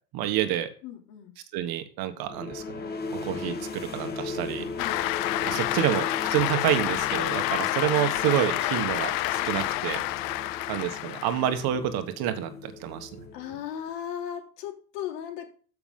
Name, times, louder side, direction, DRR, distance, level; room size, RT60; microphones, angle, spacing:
voice 1, 0.1-0.7 1.5-2.6 3.1-4.6 5.5-10.0 10.7-13.1, right 11 dB, 45° right, 9 dB, 1.5 m, -28 dB
voice 2, 0.8-1.4 4.8-5.1 10.3-10.9 13.3-15.5, left 9 dB, 70° left, 2 dB, 3.4 m, -37 dB
sound 1, 2.3-13.8, left 4 dB, 20° left, 1.5 m, -38 dB
Cheering / Applause, 4.8-11.6, left 17 dB, 45° left, 0.6 m, -29 dB
13.0 x 6.1 x 3.8 m, 0.41 s
supercardioid pair, 125°, 49 cm